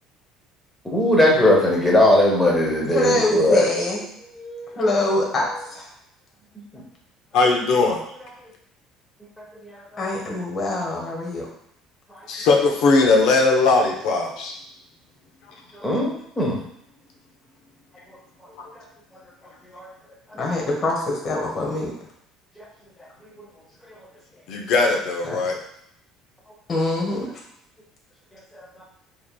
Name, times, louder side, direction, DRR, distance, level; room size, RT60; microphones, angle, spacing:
voice 1, 0.9-3.7 4.4-4.8 15.8-16.6 19.7-19.9, left 1 dB, 5° left, -3 dB, 1.0 m, -19 dB
voice 2, 2.9-4.0 4.8-5.9 10.0-11.5 20.3-21.9 26.7-27.3, left 2 dB, 30° left, -2 dB, 1.0 m, -24 dB
voice 3, 7.3-8.0 12.3-14.5 18.6-18.7 24.5-25.6, left 3 dB, 65° left, 2 dB, 0.7 m, -19 dB
5.0 x 2.9 x 2.2 m, 0.74 s
cardioid pair, 145°, 0 cm